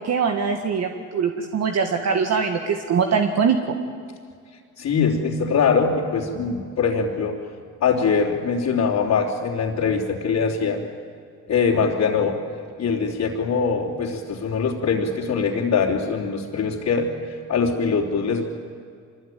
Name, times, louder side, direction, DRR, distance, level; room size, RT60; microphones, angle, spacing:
voice 1, 0.0-3.8, right 6 dB, 60° right, 4 dB, 1.9 m, -22 dB
voice 2, 4.8-7.4 7.8-10.8 11.5-12.4 12.8-17.1 17.5-18.4, left 5 dB, 65° left, -5 dB, 3.4 m, -22 dB
25.0 x 21.5 x 9.3 m, 2.2 s
cardioid pair, 90°, 30 cm